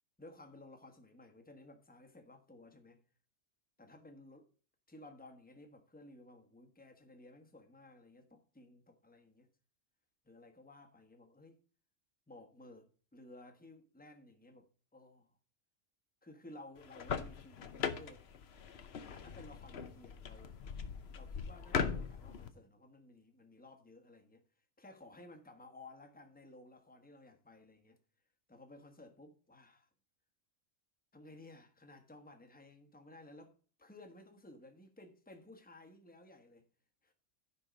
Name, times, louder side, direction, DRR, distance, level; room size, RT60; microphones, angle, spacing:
voice 1, 0.2-3.0 3.8-4.5 4.9-9.5 10.2-11.6 12.3-15.3 16.2-18.3 19.1-20.6 21.1-24.4 24.8-28.0 28.5-29.9 31.1-33.5 33.8-36.7 37.0-37.1, left 2 dB, 5° left, 1.1 m, -56 dB
sound 1, 16.8-22.5, left 6 dB, 55° left, 1.0 m, -40 dB
10.5 x 5.4 x 5.1 m
omnidirectional pair, 1.4 m